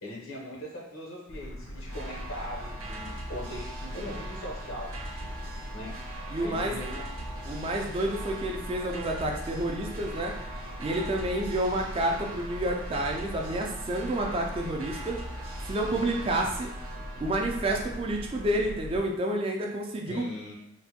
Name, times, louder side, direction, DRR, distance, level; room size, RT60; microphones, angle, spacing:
voice 1, 0.0-5.0 5.7-6.0 6.4-7.4 20.0-20.5, equal, 85° left, -2 dB, 0.8 m, -40 dB
sound 1, 1.3-19.0, equal, 60° left, 0.5 m, -40 dB
sound 2, 1.9-18.7, right 2 dB, 80° right, 0.6 m, -43 dB
voice 2, 6.3-6.7 7.5-10.3 10.8-15.2 15.7-16.7 17.2-20.2, right 1 dB, 25° right, 1 dB, 0.3 m, -29 dB
3.2 x 2.1 x 2.8 m, 0.76 s
head